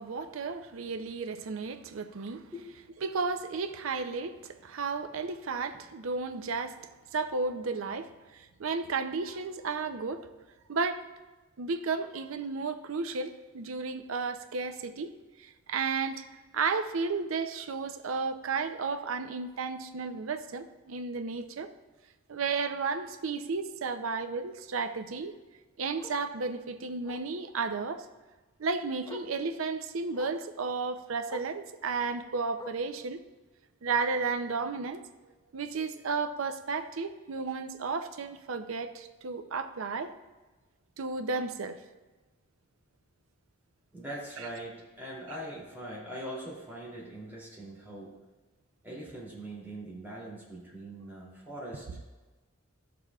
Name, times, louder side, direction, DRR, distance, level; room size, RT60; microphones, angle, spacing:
voice 1, 0.0-2.4 3.0-6.8 7.1-10.3 10.7-11.0 11.6-15.1 15.4-16.3 16.5-21.7 22.3-25.3 25.8-28.1 28.6-33.2 33.8-35.0 35.5-40.1 41.0-41.8 44.4-44.5, right 4 dB, 80° right, 9 dB, 0.6 m, -33 dB
Bark, 19.5-19.7 20.1-20.2 20.6-20.7 21.0-21.1 22.5-22.6 25.1-25.2 26.0-26.3 27.0-27.3 28.5-28.6 29.0-29.4 30.1-30.5 31.2-31.6 32.5-33.0 34.0-34.1, left 2 dB, 20° left, 0.5 m, -47 dB
voice 2, 43.9-48.1 48.8-51.8, right 1 dB, 10° right, -5 dB, 2.7 m, -42 dB
13.0 x 6.7 x 2.4 m, 1.2 s
head